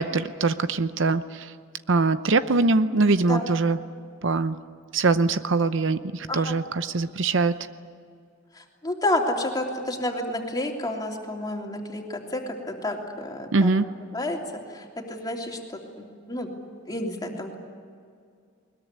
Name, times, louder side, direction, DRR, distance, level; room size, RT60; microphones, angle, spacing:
voice 1, 0.0-1.5 1.9-3.8 4.2-4.6 4.9-7.5 13.5-13.9, right 3 dB, 65° right, 12 dB, 0.7 m, -22 dB
voice 2, 8.5-12.4 12.7-14.4 14.7-15.6 16.0-16.5 16.9-17.5, left 1 dB, 20° left, 1 dB, 3.0 m, -30 dB
21.0 x 21.0 x 9.7 m, 2.2 s
head